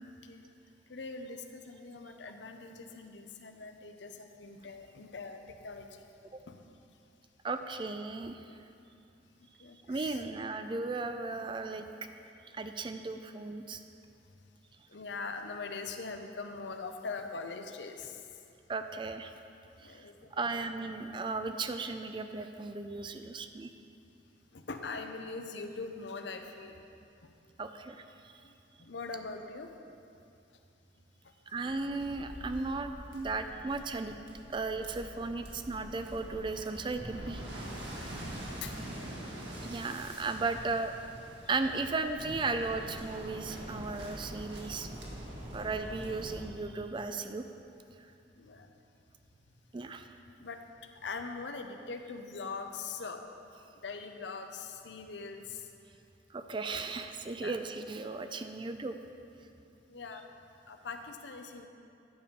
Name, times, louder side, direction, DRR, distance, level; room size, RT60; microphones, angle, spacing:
voice 1, 0.9-6.1 6.5-6.6 9.6-10.2 14.9-18.2 19.8-20.4 24.5-26.8 28.4-28.5 28.8-29.7 38.6-38.7 48.4-48.7 50.4-50.6 51.0-53.2 53.8-55.7 57.3-57.5 59.9-60.2 60.7-61.7, left 4 dB, 75° left, 6 dB, 0.7 m, -42 dB
voice 2, 7.4-8.4 9.9-11.9 12.5-13.8 18.7-19.4 19.8-20.0 20.3-23.7 27.6-28.0 31.5-34.2 34.5-37.6 39.6-40.9 41.5-44.9 45.5-47.4 49.7-50.1 56.3-59.0, right 3 dB, 25° right, 8 dB, 0.4 m, -36 dB
Waves surf, 31.6-46.4, right 1 dB, 80° right, 1.8 m, -44 dB
10.5 x 5.2 x 6.9 m, 2.6 s
head